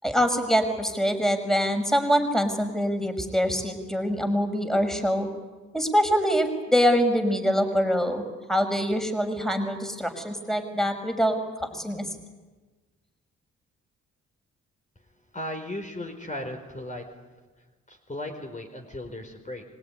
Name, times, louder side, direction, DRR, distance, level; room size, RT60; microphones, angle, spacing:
voice 1, 0.0-5.3 5.7-8.2 8.5-11.4 11.7-12.1, equal, ahead, 6 dB, 5.4 m, -24 dB
voice 2, 15.3-17.0 17.9-19.6, left 1 dB, 25° left, 4 dB, 4.6 m, -36 dB
25.0 x 20.5 x 10.0 m, 1.3 s
supercardioid pair, 55°, 30 cm